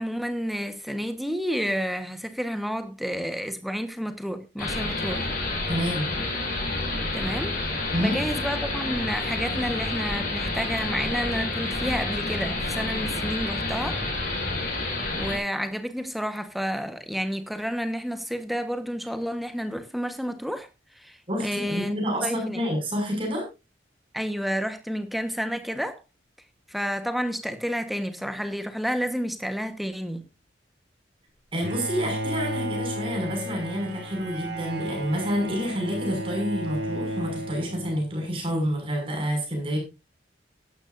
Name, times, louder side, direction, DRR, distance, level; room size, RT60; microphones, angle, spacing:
voice 1, 0.0-5.3 7.1-7.6 8.0-14.0 15.1-20.7 21.0-21.2 21.4-22.0 22.2-22.6 24.1-26.0 26.7-30.2, equal, ahead, 1.2 m, -30 dB
sound 1, 4.6-15.4, left 2 dB, 45° left, 6.1 m, -29 dB
voice 2, 5.7-6.1 7.9-8.2 21.3-23.5 31.5-39.8, equal, 30° right, 6.3 m, -28 dB
Bowed string instrument, 31.6-38.4, equal, 60° right, 2.7 m, -33 dB
16.5 x 12.5 x 2.6 m
head